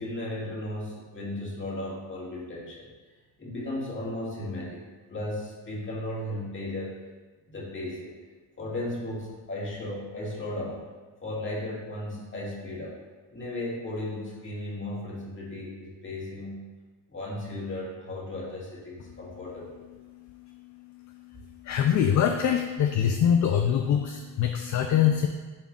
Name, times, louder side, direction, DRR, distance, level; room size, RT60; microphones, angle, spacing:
voice 1, 0.0-2.9 3.4-4.8 5.1-7.0 7.5-8.2 8.6-10.8 11.2-13.0 13.3-16.6 17.1-19.8, left 1 dB, 30° left, -5 dB, 1.9 m, -35 dB
voice 2, 21.6-25.3, left 9 dB, 45° left, 5 dB, 0.5 m, -23 dB
10.5 x 3.8 x 2.4 m, 1.3 s
cardioid pair, 110°, 41 cm